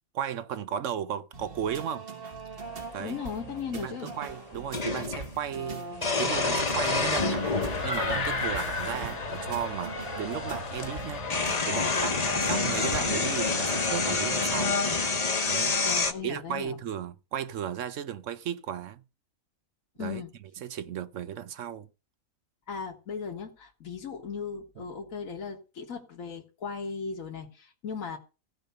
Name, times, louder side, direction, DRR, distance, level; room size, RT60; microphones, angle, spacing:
voice 1, 0.1-2.0 2.9-3.2 3.7-11.3 11.6-14.8 15.4-15.8 16.2-19.0 20.0-20.2 20.6-21.9 24.8-24.9, right 9 dB, 65° right, 1.1 m, -35 dB
sound 1, 1.3-13.2, right 4 dB, 40° right, 1.6 m, -41 dB
voice 2, 3.0-4.1 15.8-16.8 20.0-20.3 22.7-28.2, left 6 dB, 70° left, 1.9 m, -37 dB
sound 2, 3.0-3.1 4.7-5.3 6.0-7.8 8.7-8.8 10.3-10.4 10.7-16.1, left 4 dB, 30° left, 1.1 m, -27 dB
sound 3, 6.3-14.7, left 4 dB, 55° left, 1.7 m, -34 dB
15.5 x 5.3 x 6.8 m
omnidirectional pair, 1.5 m